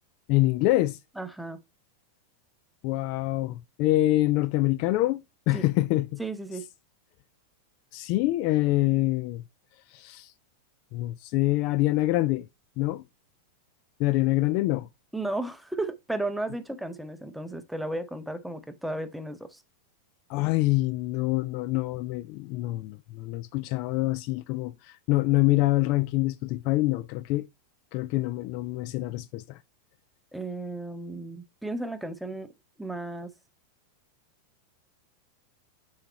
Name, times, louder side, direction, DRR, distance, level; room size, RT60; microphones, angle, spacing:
voice 1, 0.3-1.0 2.8-6.2 7.9-9.4 9.9-10.3 10.9-12.5 12.8-13.0 14.0-14.9 20.3-27.5 27.9-29.6, left 18 dB, 45° left, 0.3 m, -25 dB
voice 2, 1.2-1.6 5.5-5.6 6.2-6.7 15.1-19.6 30.3-32.5 32.8-33.3, right 2 dB, ahead, 0.8 m, -34 dB
6.8 x 4.8 x 4.1 m
figure-of-eight pair, 90°, 0 cm